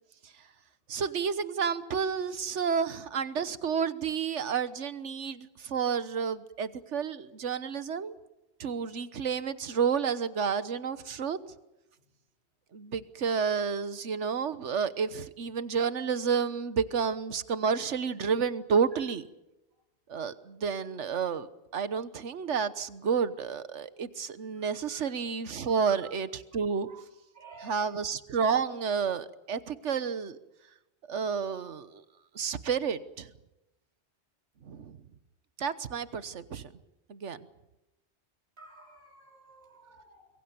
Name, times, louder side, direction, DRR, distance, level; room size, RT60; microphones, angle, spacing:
voice 1, 0.9-8.1 8.6-11.4 12.7-19.2 20.1-21.5 21.7-26.9 27.6-30.4 31.1-32.0 32.3-33.3 34.6-35.0 35.6-36.7 37.1-37.5, right 6 dB, 85° right, 14 dB, 1.5 m, -30 dB
voice 2, 24.5-25.1 25.9-26.1 26.8-27.0 27.3-27.9 38.6-40.3, right 4 dB, 60° right, 1 dB, 4.0 m, -52 dB
25.5 x 22.5 x 6.9 m, 0.94 s
omnidirectional pair, 1.2 m